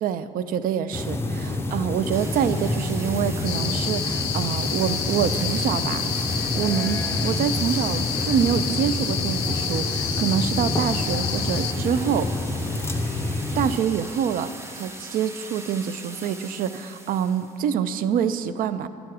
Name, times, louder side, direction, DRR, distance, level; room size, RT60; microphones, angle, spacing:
voice 1, 0.0-6.1 6.5-12.3 13.6-18.9, right 8 dB, 55° right, 12 dB, 0.4 m, -26 dB
sound 1, 0.9-13.8, left 2 dB, 15° left, 0.5 m, -28 dB
sound 2, 2.1-17.6, right 2 dB, 15° right, 0.8 m, -40 dB
sound 3, 3.4-11.7, left 9 dB, 90° left, 0.6 m, -29 dB
10.0 x 6.2 x 4.8 m, 2.7 s
cardioid pair, 110°, 17 cm